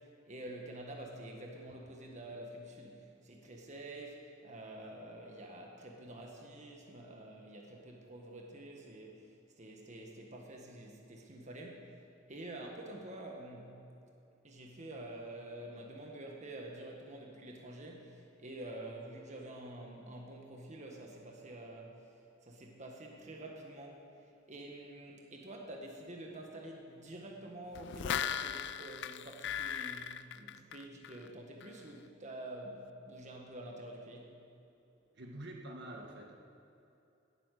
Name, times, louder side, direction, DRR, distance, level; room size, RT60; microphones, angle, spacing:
voice 1, 0.0-11.9 12.3-13.7 14.4-22.1 22.4-34.3, right 1 dB, 40° right, 0 dB, 1.6 m, -48 dB
sound 1, 27.7-31.3 31.6-31.7, left 9 dB, 65° left, 0.4 m, -38 dB
voice 2, 35.1-36.3, right 1 dB, 60° right, 1 dB, 1.7 m, -46 dB
18.0 x 8.8 x 6.6 m, 2.7 s
head